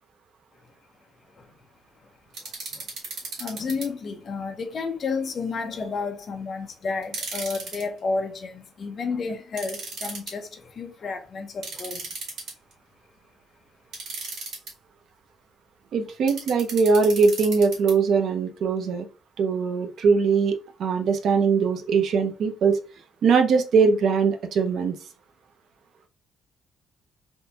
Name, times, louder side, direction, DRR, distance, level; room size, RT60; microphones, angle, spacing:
sound 1, 2.3-3.9 7.0-7.8 9.6-10.3 11.6-12.7 13.9-14.7 16.3-17.9, right 3 dB, 75° right, 2.0 m, -35 dB
voice 1, 2.4-2.8 3.4-12.1, left 4 dB, 35° left, 0.6 m, -31 dB
voice 2, 15.9-19.1 19.4-22.8 23.2-25.0, right 5 dB, 60° right, 0.6 m, -21 dB
3.5 x 2.6 x 2.8 m
cardioid pair, 155°, 0 cm